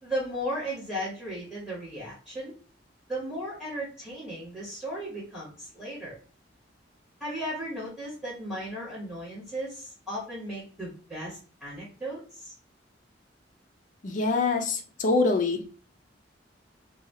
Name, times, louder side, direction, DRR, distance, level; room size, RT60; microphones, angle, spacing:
voice 1, 0.0-2.5 3.1-6.2 7.2-12.5, equal, 5° right, -8 dB, 1.5 m, -35 dB
voice 2, 14.0-15.6, left 3 dB, 45° left, 4 dB, 0.5 m, -25 dB
2.7 x 2.4 x 2.6 m, 0.39 s
head